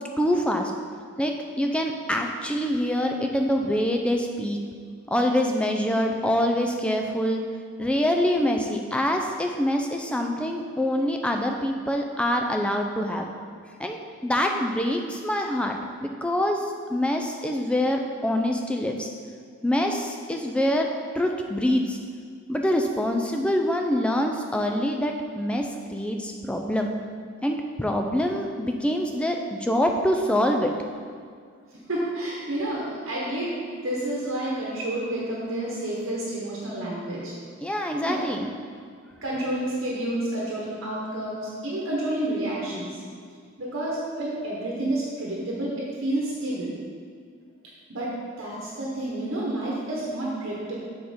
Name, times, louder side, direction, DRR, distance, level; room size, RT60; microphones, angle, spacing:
voice 1, 0.2-0.7 1.2-4.6 5.1-7.4 7.8-13.3 13.8-15.7 16.0-19.1 19.6-20.9 21.1-22.0 22.5-26.9 27.4-30.7 37.6-38.5, left 1 dB, 5° left, 2 dB, 0.4 m, -25 dB
voice 2, 31.9-37.3 38.0-38.2 39.2-43.0 43.6-46.7 47.9-48.1 48.4-50.8, right 1 dB, 65° right, -5 dB, 1.1 m, -29 dB
6.5 x 4.3 x 5.0 m, 2.1 s
head